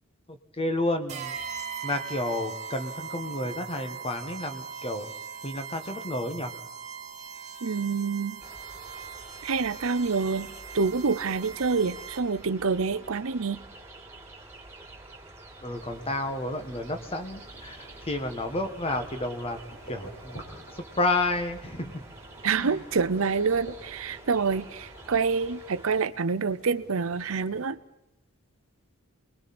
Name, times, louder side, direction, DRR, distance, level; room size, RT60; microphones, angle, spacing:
voice 1, 0.3-1.4 1.8-5.1 5.4-6.5 15.6-19.6 19.9-20.4 20.7-22.0 22.5-22.8, left 2 dB, 25° left, 1.6 m, -31 dB
sound 1, 1.1-12.5, right 6 dB, 35° right, 1.8 m, -40 dB
voice 2, 7.6-8.4 9.4-13.6 22.4-27.8, right 5 dB, 65° right, 0.7 m, -27 dB
sound 2, 8.4-26.0, right 2 dB, 10° right, 3.0 m, -48 dB
sound 3, 15.7-27.7, right 1 dB, 50° left, 4.7 m, -50 dB
30.0 x 21.5 x 4.3 m
head